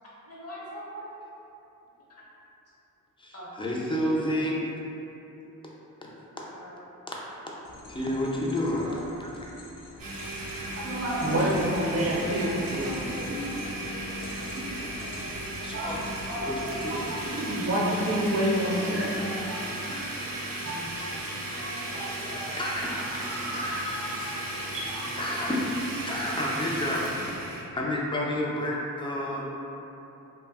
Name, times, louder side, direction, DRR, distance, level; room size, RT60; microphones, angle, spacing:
voice 1, 0.2-1.1 3.3-3.5 3.8-3.9 4.3-4.5 6.5-6.8 8.4-9.0, equal, 45° left, -8 dB, 0.8 m, -42 dB
voice 2, 3.2-4.6 6.0-6.1 7.9-8.9 9.2-9.3 15.6-16.0 16.4-16.5 16.8-17.0 19.7-20.1 20.4-20.6 21.0-21.1 21.6-21.9 22.6-22.9 23.5-23.8 25.2-25.6 26.0-27.1 27.7-29.4, left 1 dB, 15° left, -4 dB, 0.4 m, -30 dB
sound 1, 7.6-17.3, left 3 dB, 70° left, 0.5 m, -47 dB
Domestic sounds home sounds, 10.0-27.6, right 1 dB, 85° right, 0.5 m, -35 dB
voice 3, 10.8-14.2 14.6-15.1 15.7-20.1 20.6-22.2 22.8-25.1, right 1 dB, 45° right, -5 dB, 0.6 m, -31 dB
voice 4, 12.8-15.6 16.4-17.0 17.4-17.8 18.8-19.5 21.8-22.6 26.0-26.2, equal, 85° left, -7 dB, 0.8 m, -45 dB
2.4 x 2.1 x 3.4 m, 2.9 s
wide cardioid pair, 90°, 33 cm